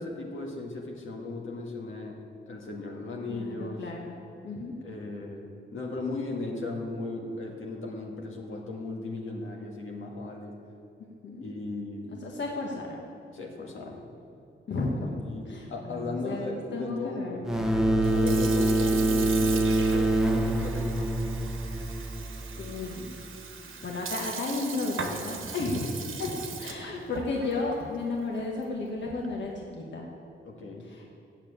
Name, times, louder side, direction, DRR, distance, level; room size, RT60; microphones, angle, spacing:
voice 1, 0.0-2.2 2.5-3.9 4.8-10.6 11.4-12.1 13.3-14.0 15.2-17.7 18.1-21.0 25.7-25.9 26.1-26.2 30.5-30.9, left 3 dB, 85° left, 0 dB, 1.7 m, -37 dB
voice 2, 3.3-4.2 4.4-4.7 11.2-11.5 12.0-12.9 14.7-17.4 22.6-23.1 23.6-30.1 30.9-31.0, left 3 dB, 65° left, -2 dB, 1.3 m, -33 dB
sound 1, 17.4-22.9, right 1 dB, ahead, 0.8 m, -25 dB
Sink (filling or washing) / Fill (with liquid), 17.9-29.5, right 5 dB, 80° right, 1.1 m, -40 dB
9.3 x 7.3 x 8.6 m, 2.6 s
wide cardioid pair, 130°, 20 cm